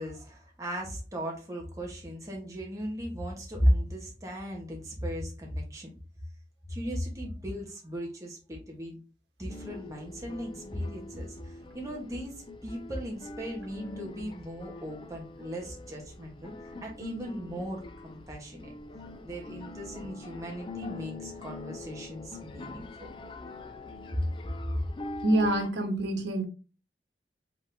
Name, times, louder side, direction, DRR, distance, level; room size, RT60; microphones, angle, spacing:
voice 1, 0.0-5.9 6.7-9.0 9.4-12.3 12.6-18.7 19.2-23.1 24.1-24.2 24.7-24.8, equal, 20° right, -1 dB, 1.1 m, -35 dB
sound 1, 9.5-25.7, left 2 dB, 30° left, 0.4 m, -44 dB
voice 2, 25.2-26.4, right 1 dB, 85° right, 4 dB, 1.2 m, -26 dB
4.9 x 3.7 x 2.6 m, 0.34 s
head